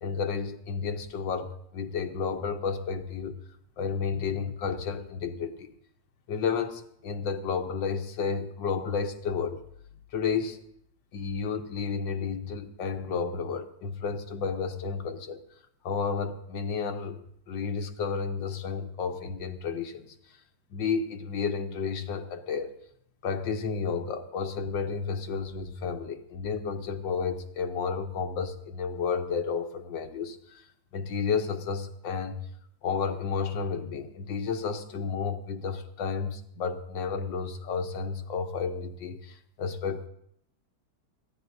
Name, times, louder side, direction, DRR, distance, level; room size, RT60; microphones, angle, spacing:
voice 1, 0.0-3.4 3.8-5.7 6.3-9.6 10.1-10.6 11.1-15.4 15.8-17.2 17.5-20.2 20.7-22.7 23.2-30.6 30.9-32.4 32.8-40.1, left 5 dB, 75° left, 6 dB, 1.6 m, -31 dB
22.5 x 15.0 x 2.6 m, 0.71 s
omnidirectional pair, 2.1 m